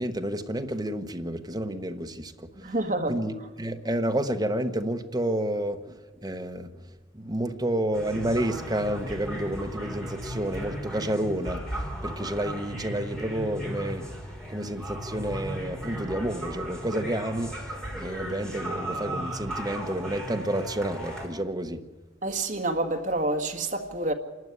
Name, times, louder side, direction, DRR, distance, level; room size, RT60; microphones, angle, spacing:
voice 1, 0.0-2.7 3.1-14.1 14.5-21.8, right 1 dB, 20° right, 1.1 m, -30 dB
voice 2, 2.6-3.2 22.2-24.1, right 2 dB, 40° right, 1.7 m, -28 dB
sound 1, 7.9-21.3, right 1 dB, 5° left, 3.8 m, -36 dB
27.0 x 12.5 x 9.7 m
head